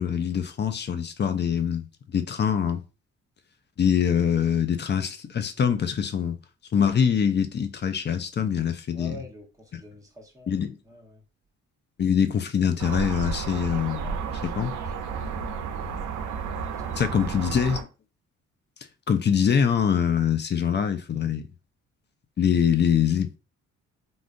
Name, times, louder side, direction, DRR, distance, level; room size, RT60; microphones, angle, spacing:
voice 1, 0.0-2.8 3.8-6.4 6.7-9.2 9.7-9.8 10.5-10.8 12.0-14.7 17.0-17.8 19.1-21.4 22.4-23.3, left 8 dB, 35° left, 0.5 m, -24 dB
voice 2, 8.9-10.6 10.8-11.2 14.0-14.6 15.0-16.0 16.7-17.6, equal, 10° right, 1.1 m, -48 dB
sound 1, 12.8-17.8, right 6 dB, 80° right, 0.6 m, -32 dB
3.6 x 2.5 x 2.5 m
cardioid pair, 90°, 30 cm